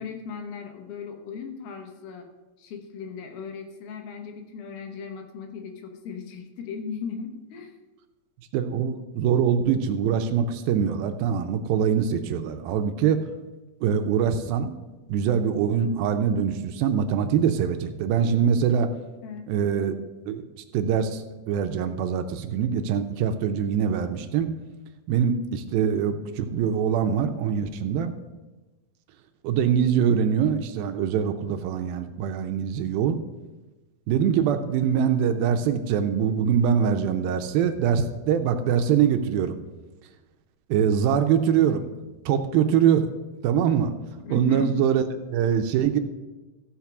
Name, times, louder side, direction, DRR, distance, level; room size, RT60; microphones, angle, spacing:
voice 1, 0.0-2.3 2.6-7.8 19.2-19.5 44.3-44.7, left 6 dB, 80° left, 4 dB, 2.9 m, -37 dB
voice 2, 8.5-13.2 13.8-14.7 15.1-18.9 19.5-20.0 20.3-20.4 20.7-24.5 25.1-28.1 29.4-33.2 34.1-39.6 40.7-41.9 42.3-43.1 43.4-43.9 44.3-45.0 45.3-46.0, right 8 dB, 80° right, 7 dB, 2.4 m, -23 dB
15.0 x 5.1 x 5.9 m, 1.1 s
omnidirectional pair, 4.3 m